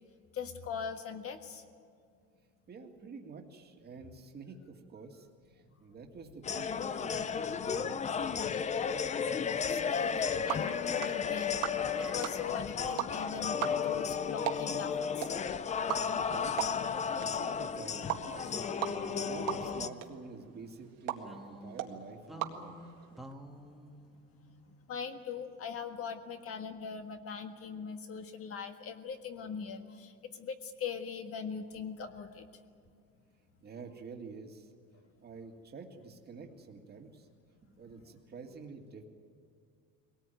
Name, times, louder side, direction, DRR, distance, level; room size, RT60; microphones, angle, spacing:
voice 1, 0.3-1.6 9.7-10.1 10.4-11.6 12.0-15.3 18.8-18.9 24.9-32.4, left 6 dB, 40° left, 7 dB, 1.6 m, -41 dB
voice 2, 2.7-9.0 16.0-16.6 16.8-18.6 19.2-22.7 33.6-34.7 35.2-37.3 37.6-39.0, right 4 dB, 25° right, 3 dB, 2.2 m, -48 dB
sound 1, 6.4-19.9, left 6 dB, 20° left, 0.5 m, -33 dB
sound 2, 6.9-8.2 9.1-10.6 12.0-13.5 15.4-16.9 17.2-17.3 18.3-20.4 21.2-25.0, right 1 dB, ahead, 1.6 m, -51 dB
sound 3, 10.0-23.3, right 11 dB, 60° right, 2.0 m, -41 dB
22.0 x 18.5 x 9.2 m, 2.3 s
cardioid pair, 150°, 37 cm